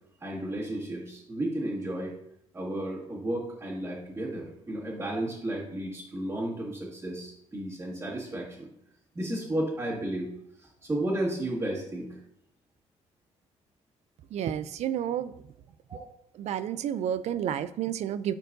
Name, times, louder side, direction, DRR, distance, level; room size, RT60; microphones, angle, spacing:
voice 1, 0.2-2.1 2.5-8.7 9.1-10.3 10.6-12.2 15.9-16.0, right 1 dB, 20° right, -8 dB, 1.9 m, -33 dB
voice 2, 14.3-15.3 16.4-18.3, right 10 dB, 65° right, 15 dB, 0.4 m, -30 dB
11.5 x 4.5 x 2.6 m, 0.77 s
cardioid pair, 100°, 12 cm